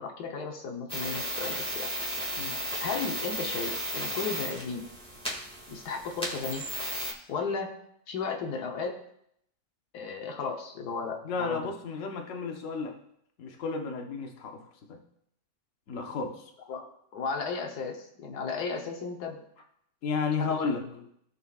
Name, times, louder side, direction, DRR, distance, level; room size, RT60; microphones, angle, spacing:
voice 1, 0.0-1.9 2.8-4.8 5.7-6.6 7.3-7.8 8.1-9.0 9.9-11.6 16.7-19.4 20.4-20.7, left 5 dB, 90° left, 2 dB, 1.5 m, -35 dB
sound 1, 0.9-7.1, equal, 5° left, 1.7 m, -34 dB
voice 2, 11.2-12.9 13.4-14.6 14.9-15.0 15.9-16.4 20.0-20.8, left 4 dB, 55° left, 3 dB, 1.3 m, -32 dB
16.0 x 5.7 x 2.4 m, 0.72 s
omnidirectional pair, 1.6 m